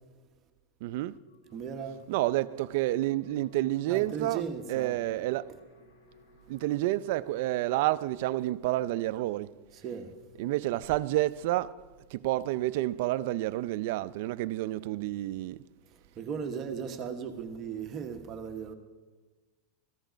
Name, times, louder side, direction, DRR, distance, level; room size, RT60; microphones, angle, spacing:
voice 1, 0.8-1.2 2.1-4.4 4.7-5.5 6.5-9.5 10.4-11.7 12.1-15.6, right 16 dB, 60° right, 0.4 m, -29 dB
sound 1, 1.0-7.8, left 3 dB, 90° left, 3.8 m, -58 dB
voice 2, 1.5-2.0 3.9-5.2 9.7-10.1 16.2-18.7, right 6 dB, 30° right, 1.0 m, -37 dB
14.5 x 13.0 x 5.1 m
supercardioid pair, 155°, 0 cm